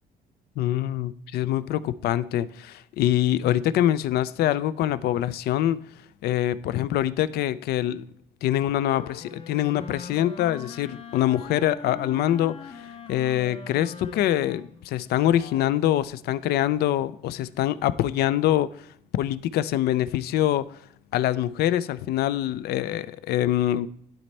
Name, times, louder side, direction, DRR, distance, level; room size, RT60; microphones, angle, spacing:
voice 1, 0.6-5.8 6.2-8.0 8.4-18.9 19.1-20.7 21.1-23.9, left 12 dB, 70° left, 0.4 m, -24 dB
Wind instrument woodwind instrument, 8.6-16.0, left 5 dB, 35° left, 0.7 m, -42 dB
11.5 x 4.3 x 3.2 m
cardioid pair, 110°, 17 cm